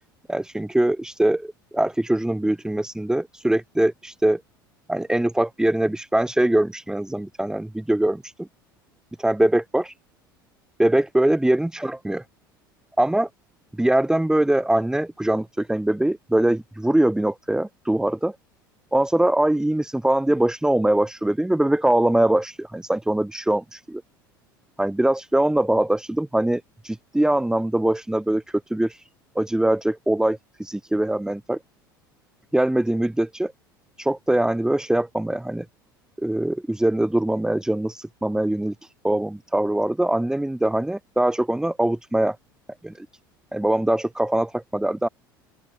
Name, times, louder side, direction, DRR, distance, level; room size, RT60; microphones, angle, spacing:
voice 1, 0.3-4.4 4.9-8.5 9.2-9.9 10.8-12.2 13.0-13.3 13.7-18.4 18.9-24.0 24.8-29.1 29.3-31.6 32.5-33.5 34.0-35.6 36.2-42.4 42.8-43.1 43.5-45.1, right 1 dB, 5° right, 6.4 m, -22 dB
open air
figure-of-eight pair, 70°, 12 cm